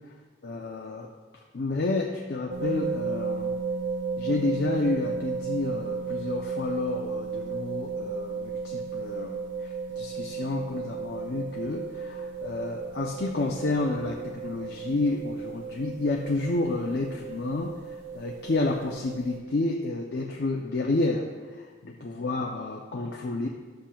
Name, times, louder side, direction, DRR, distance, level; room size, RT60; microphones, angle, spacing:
voice 1, 0.4-1.1 1.5-3.5 4.2-17.7 18.1-21.3 21.6-23.5, left 2 dB, 65° left, 0 dB, 0.5 m, -30 dB
sound 1, 2.5-19.4, right 5 dB, 80° right, 1.2 m, -34 dB
11.5 x 7.5 x 2.2 m, 1.4 s
head